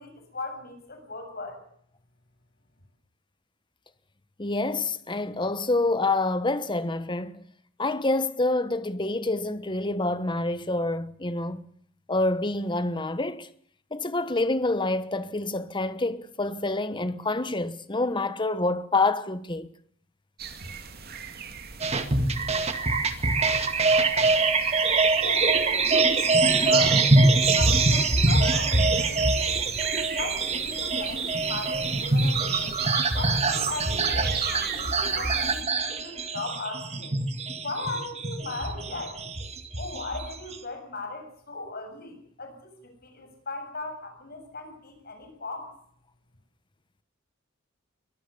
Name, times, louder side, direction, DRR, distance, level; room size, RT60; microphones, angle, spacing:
voice 1, 0.0-1.6 25.1-27.1 27.5-29.2 30.2-32.8 33.1-37.2 37.6-39.2 39.8-45.7, left 3 dB, 50° left, 7.6 m, -37 dB
voice 2, 4.4-7.4 7.8-11.7 12.1-13.5 13.9-19.7, left 2 dB, 25° left, 1.2 m, -27 dB
sound 1, 20.4-35.6, right 8 dB, 50° right, 2.5 m, -34 dB
sound 2, 21.8-40.6, right 3 dB, 30° right, 2.0 m, -24 dB
23.5 x 19.5 x 7.1 m
head